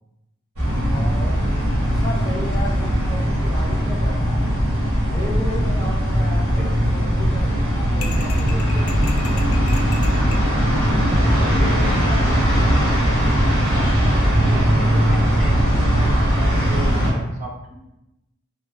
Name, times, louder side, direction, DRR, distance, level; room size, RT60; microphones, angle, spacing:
sound 1, 0.6-17.1, equal, 90° right, 1.1 m, -19 dB
voice 1, 0.9-1.5 1.8-4.4 5.1-9.0, left 1 dB, 20° left, -4 dB, 0.4 m, -34 dB
sound 2, 8.0-10.5, left 5 dB, 80° left, 0.4 m, -36 dB
voice 2, 11.3-14.0 14.4-17.8, equal, 40° right, -2 dB, 0.5 m, -35 dB
3.1 x 2.1 x 2.3 m, 0.90 s
head